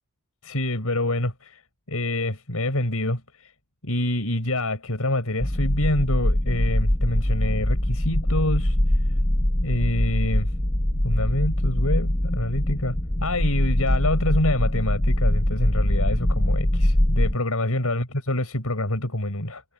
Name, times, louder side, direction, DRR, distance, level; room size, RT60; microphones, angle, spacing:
voice 1, 0.4-1.6 1.9-3.2 3.8-8.8 9.6-10.5 10.9-13.0 13.2-19.6, left 1 dB, 90° left, 5.6 m, -26 dB
sound 1, 5.4-17.4, left 1 dB, 25° left, 1.3 m, -23 dB
head